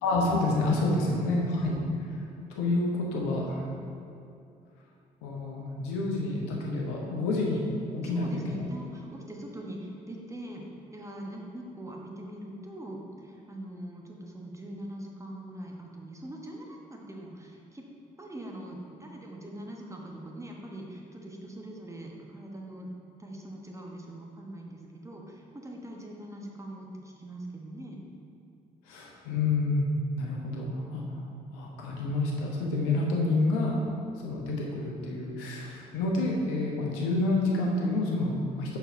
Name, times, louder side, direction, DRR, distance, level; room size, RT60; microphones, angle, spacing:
voice 1, 0.0-1.8 2.5-3.6 5.2-7.7 7.9-8.6 28.9-29.9 30.2-31.2 31.5-33.8 34.2-38.8, left 2 dB, 70° left, -1 dB, 1.0 m, -28 dB
voice 2, 8.0-10.6 10.9-17.9 18.2-22.9 23.2-28.0, right 1 dB, 15° right, -1 dB, 1.2 m, -42 dB
6.9 x 4.6 x 4.4 m, 2.5 s
figure-of-eight pair, 45°, 21 cm